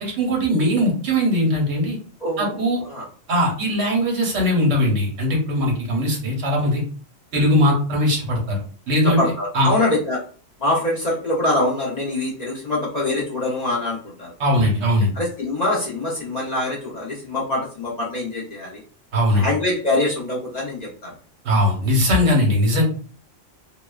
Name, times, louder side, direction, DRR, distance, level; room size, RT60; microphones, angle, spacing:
voice 1, 0.0-2.0 2.4-2.8 3.3-6.8 7.3-9.2 9.5-9.7 14.4-15.1 19.1-19.5 21.4-22.8, equal, 85° right, -1 dB, 1.3 m, -20 dB
voice 2, 2.2-3.1 9.0-10.2 10.6-14.3 15.1-18.8 19.3-21.1, left 2 dB, 45° left, -4 dB, 0.6 m, -24 dB
2.8 x 2.1 x 2.3 m, 0.41 s
omnidirectional pair, 1.3 m